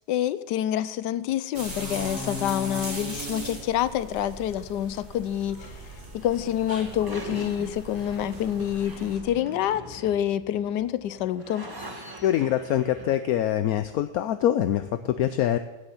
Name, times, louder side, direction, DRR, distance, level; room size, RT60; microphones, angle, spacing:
voice 1, 0.1-5.8 6.1-11.7, left 11 dB, 90° left, 1.2 m, -27 dB
sound 1, 1.5-9.2, equal, 35° right, 4.3 m, -38 dB
sound 2, 5.4-13.2, right 1 dB, 15° right, 1.3 m, -43 dB
voice 2, 12.2-15.6, left 11 dB, 70° left, 1.0 m, -24 dB
16.0 x 6.6 x 7.2 m
omnidirectional pair, 1.8 m